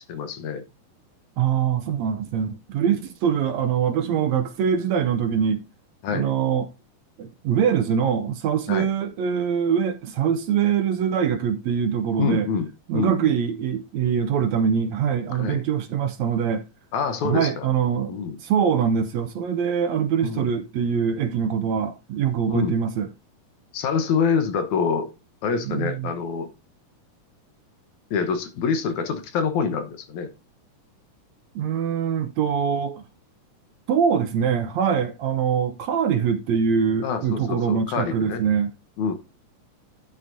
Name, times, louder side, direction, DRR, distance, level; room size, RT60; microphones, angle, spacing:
voice 1, 0.1-0.6 6.0-6.3 8.7-8.9 12.2-12.7 12.9-13.4 15.4-15.6 16.9-17.7 18.1-18.4 20.2-20.5 22.5-22.8 23.7-25.1 25.4-26.5 28.1-30.3 37.0-38.4 39.0-39.1, left 6 dB, 70° left, 2.3 m, -26 dB
voice 2, 1.4-5.6 6.1-6.7 7.2-12.5 12.9-16.7 17.2-23.1 25.7-26.1 31.6-33.0 33.9-38.7, right 7 dB, 70° right, 1.8 m, -23 dB
12.5 x 8.1 x 2.7 m
omnidirectional pair, 3.7 m